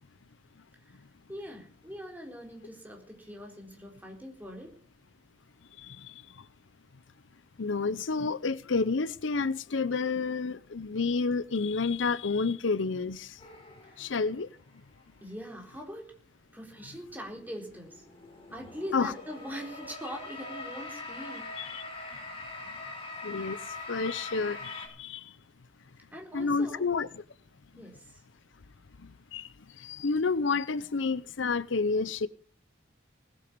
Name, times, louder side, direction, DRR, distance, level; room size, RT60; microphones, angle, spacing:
voice 1, 1.3-4.8 13.8-14.0 15.2-16.1 16.5-18.0 18.5-21.5 26.1-26.9 27.8-28.2, equal, 10° right, 3.9 m, -42 dB
voice 2, 7.6-13.3 14.0-14.5 18.9-19.1 21.6-21.8 23.2-23.6 23.9-25.2 26.3-27.1 29.3-29.5 29.8-32.3, left 4 dB, 80° left, 0.7 m, -29 dB
sound 1, 13.4-14.6 15.4-15.5 17.0-24.9, left 3 dB, 30° left, 6.3 m, -43 dB
19.5 x 8.4 x 6.9 m
head